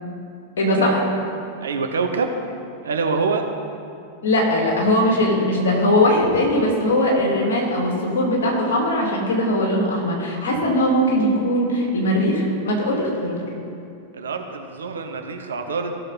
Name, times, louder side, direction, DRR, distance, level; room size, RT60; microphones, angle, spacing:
voice 1, 0.6-1.0 4.2-13.4, left 1 dB, 60° left, -1 dB, 2.3 m, -20 dB
voice 2, 1.6-2.4 2.8-3.4 14.1-16.0, right 4 dB, 70° right, 5 dB, 0.9 m, -25 dB
16.0 x 6.5 x 4.0 m, 2.5 s
figure-of-eight pair, 90°, 0 cm